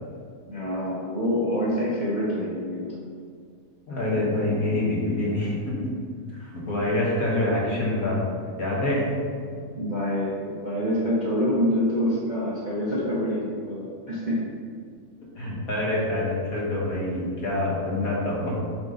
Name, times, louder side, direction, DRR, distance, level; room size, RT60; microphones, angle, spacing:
voice 1, 0.5-3.0 9.7-14.5, equal, 35° right, -7 dB, 0.8 m, -26 dB
voice 2, 3.9-5.6 6.4-8.2 8.6-9.0 15.4-18.5, left 1 dB, 55° left, -5 dB, 1.9 m, -26 dB
8.1 x 3.6 x 3.9 m, 2.1 s
omnidirectional pair, 1.8 m